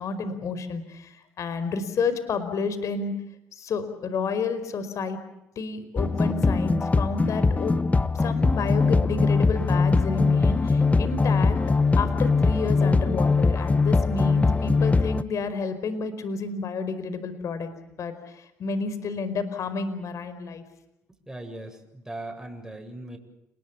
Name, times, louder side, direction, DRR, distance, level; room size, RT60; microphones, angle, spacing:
voice 1, 0.0-3.1 3.5-5.2 5.6-7.7 8.2-11.6 11.9-17.7 18.0-20.6, left 4 dB, 55° left, 12 dB, 4.8 m, -30 dB
sound 1, 6.0-15.2, left 3 dB, 20° left, 1.2 m, -21 dB
voice 2, 21.3-23.2, right 1 dB, 10° right, 3 dB, 7.8 m, -39 dB
29.5 x 20.5 x 7.2 m, 0.84 s
supercardioid pair, 70°, 6 cm